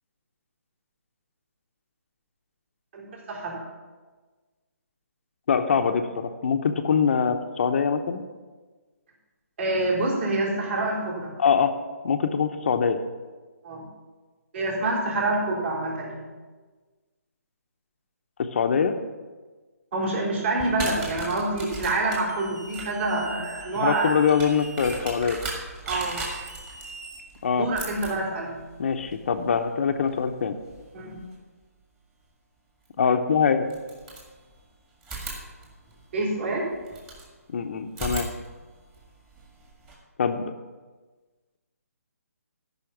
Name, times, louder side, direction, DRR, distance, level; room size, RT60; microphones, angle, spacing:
voice 1, 2.9-3.6 9.6-11.3 13.6-13.8 14.5-16.3 19.9-24.1 25.9-26.2 27.6-28.6 30.9-31.2 36.1-36.7, right 2 dB, 45° right, -3 dB, 3.7 m, -27 dB
voice 2, 5.5-8.2 11.4-11.7 12.0-13.0 18.4-19.0 23.8-25.4 27.4-27.7 28.8-30.6 33.0-33.7 37.5-38.3 40.2-40.4, left 6 dB, 50° left, 6 dB, 0.8 m, -23 dB
sound 1, 20.6-31.4 32.8-32.9 33.6-34.6 35.0-37.3 37.9-39.9, right 3 dB, 15° right, 1.8 m, -39 dB
sound 2, 22.3-25.0 25.9-27.7, right 2 dB, 90° right, 1.4 m, -43 dB
13.5 x 5.7 x 5.9 m, 1.3 s
hypercardioid pair, 155°, 9 cm